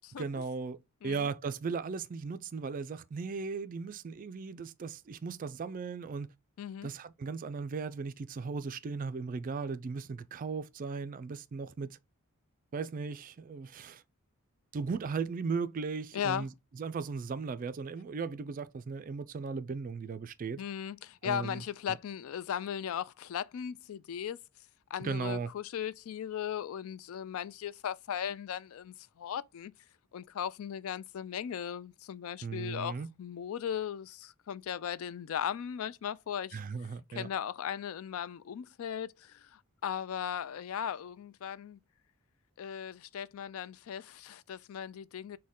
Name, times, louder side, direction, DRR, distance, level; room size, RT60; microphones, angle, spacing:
voice 1, 0.2-6.3 6.8-12.0 12.7-14.0 14.7-20.6 21.2-21.6 21.9-22.0 25.0-25.5 32.4-33.1 36.5-37.3, right 5 dB, 40° right, 0.3 m, -37 dB
voice 2, 6.6-6.9 16.1-16.5 20.6-24.4 24.9-29.7 30.1-36.6 37.1-41.8 42.6-45.4, left 9 dB, 70° left, 0.3 m, -37 dB
6.3 x 2.2 x 3.6 m
head